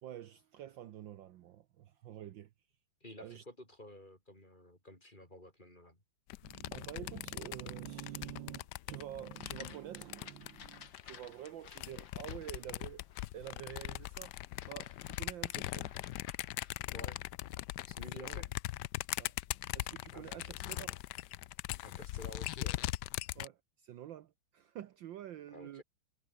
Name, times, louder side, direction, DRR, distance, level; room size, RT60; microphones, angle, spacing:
voice 1, 0.0-2.5 3.2-3.4 6.4-13.0 13.3-14.3 14.7-15.9 18.1-18.4 19.2-19.3 19.7-21.0 23.3-25.8, right 12 dB, 65° right, 1.5 m, -48 dB
voice 2, 3.0-6.0 16.9-17.2 17.9-18.5 20.1-20.9 21.8-22.8 25.5-25.8, left 1 dB, 20° left, 7.2 m, -52 dB
sound 1, 6.3-11.1 11.7-23.5, left 16 dB, 80° left, 0.9 m, -40 dB
sound 2, 9.3-17.2, left 8 dB, 60° left, 2.2 m, -56 dB
omnidirectional pair, 2.4 m